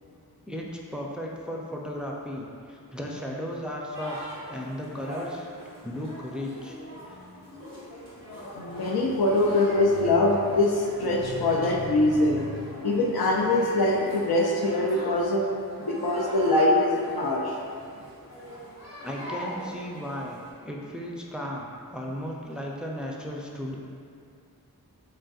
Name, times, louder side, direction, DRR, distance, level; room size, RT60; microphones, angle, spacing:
voice 1, 0.5-4.2 4.4-5.5 5.8-6.8 7.1-7.2 19.0-23.8, equal, ahead, -2 dB, 0.4 m, -35 dB
sound 1, 3.9-20.5, left 1 dB, 45° left, 1.4 m, -41 dB
voice 2, 8.6-12.5 12.8-15.4 15.8-17.5, left 2 dB, 80° left, -2 dB, 0.6 m, -23 dB
3.9 x 3.7 x 2.4 m, 2.5 s
wide cardioid pair, 45°, 37 cm